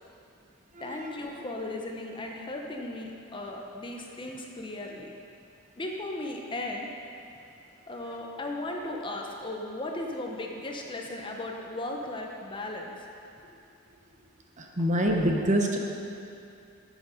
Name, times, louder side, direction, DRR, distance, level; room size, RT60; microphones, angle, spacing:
voice 1, 0.8-5.1 5.8-6.9 7.9-13.1 14.8-14.9, left 2 dB, 25° left, 1 dB, 0.8 m, -36 dB
voice 2, 14.6-15.8, equal, 35° right, 1 dB, 0.9 m, -25 dB
10.0 x 7.2 x 5.6 m, 2.7 s
head